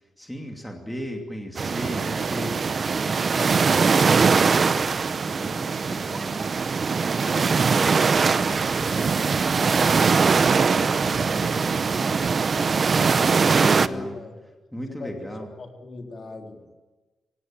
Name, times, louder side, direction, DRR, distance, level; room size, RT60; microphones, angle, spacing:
voice 1, 0.2-6.5 6.9-10.0 10.5-12.6 13.2-14.2 14.7-15.5, equal, 5° left, 2 dB, 2.7 m, -37 dB
sound 1, 1.6-13.9, right 5 dB, 40° right, 0.8 m, -21 dB
voice 2, 13.5-14.3 14.9-15.3 15.6-16.6, left 3 dB, 45° left, 2 dB, 3.7 m, -38 dB
26.0 x 17.5 x 8.9 m, 1.2 s
cardioid pair, 125°, 0 cm